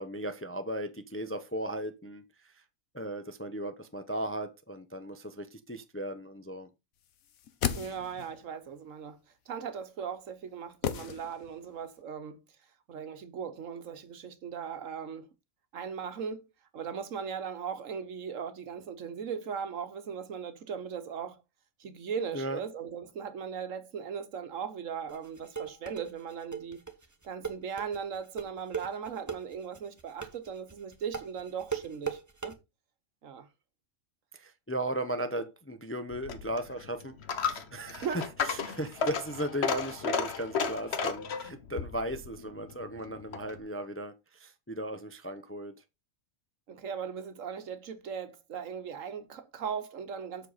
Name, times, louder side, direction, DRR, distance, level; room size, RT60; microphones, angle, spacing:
voice 1, 0.0-2.6 2.9-6.7 22.3-22.6 34.3-45.7, right 1 dB, 15° left, 0.5 m, -36 dB
sound 1, 7.2-8.4 10.8-11.7 12.0-12.1, left 9 dB, 80° left, 1.3 m, -35 dB
voice 2, 7.7-9.2 9.5-12.4 12.9-15.3 15.7-16.4 16.7-21.4 21.8-26.8 27.2-32.6 33.2-33.5 38.0-38.2 46.7-50.5, right 7 dB, 65° right, 1.3 m, -38 dB
sound 2, 25.1-32.5, right 6 dB, 15° right, 0.9 m, -38 dB
Coin (dropping), 36.1-43.6, left 5 dB, 55° left, 1.2 m, -34 dB
7.5 x 6.5 x 4.0 m
omnidirectional pair, 1.4 m